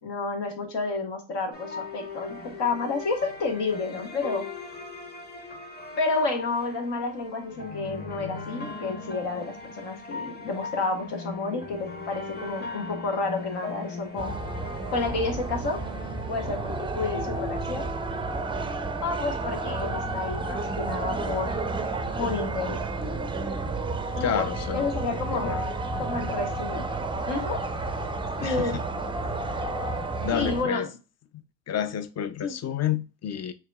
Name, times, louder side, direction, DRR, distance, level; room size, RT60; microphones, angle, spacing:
voice 1, 0.0-4.4 6.0-14.3 14.9-15.8 16.3-17.9 19.0-21.6 22.2-22.8 24.1-24.5 24.7-25.5 26.0-26.8 27.3-27.6 28.4-28.8 30.3-30.9 32.4-32.6, left 3 dB, 70° left, 1.3 m, -30 dB
sound 1, 1.5-17.0, left 3 dB, 25° left, 0.9 m, -39 dB
sound 2, 14.2-30.6, right 2 dB, 10° right, 0.4 m, -31 dB
voice 2, 24.2-24.9 25.3-25.6 28.4-28.7 30.2-30.9 31.3-33.5, left 9 dB, 40° left, 0.5 m, -29 dB
4.7 x 2.9 x 2.3 m
cardioid pair, 85°, 43 cm